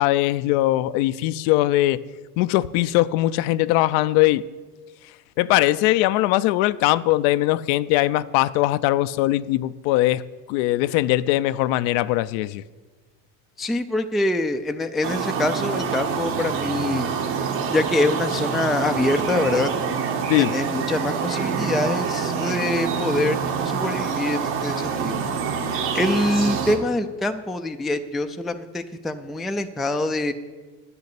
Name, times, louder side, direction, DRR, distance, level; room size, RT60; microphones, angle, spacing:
voice 1, 0.0-2.0 2.4-4.4 5.4-10.2 10.5-12.6 20.3-20.5, left 16 dB, 65° left, 0.6 m, -20 dB
voice 2, 13.6-17.1 17.7-19.7 20.4-25.2 25.9-30.3, left 2 dB, ahead, 0.3 m, -25 dB
sound 1, 15.0-26.8, right 6 dB, 65° right, 2.0 m, -26 dB
9.5 x 6.8 x 8.4 m
hypercardioid pair, 85°, 49 cm